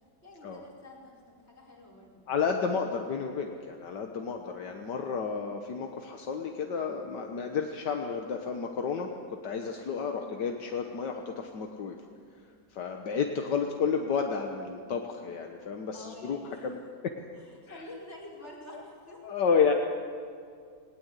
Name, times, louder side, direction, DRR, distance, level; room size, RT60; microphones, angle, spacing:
voice 1, 0.2-2.2 9.9-10.2 15.9-16.7 17.6-19.4, left 1 dB, 40° left, -3 dB, 5.4 m, -48 dB
voice 2, 2.3-12.0 12.7-17.1 17.7-17.8 19.2-19.7, left 6 dB, 75° left, 3 dB, 1.8 m, -31 dB
20.0 x 19.5 x 8.2 m, 2.2 s
omnidirectional pair, 1.9 m